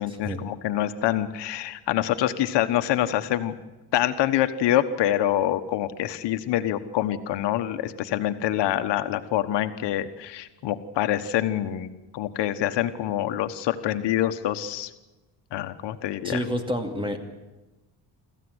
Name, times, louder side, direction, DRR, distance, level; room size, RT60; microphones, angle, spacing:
voice 1, 0.0-3.5 3.9-11.9 12.1-14.9 15.5-16.4, left 12 dB, 80° left, 9 dB, 1.3 m, -26 dB
voice 2, 16.2-17.2, equal, 10° right, 5 dB, 2.5 m, -28 dB
26.0 x 14.5 x 8.0 m, 1.1 s
cardioid pair, 130°, 42 cm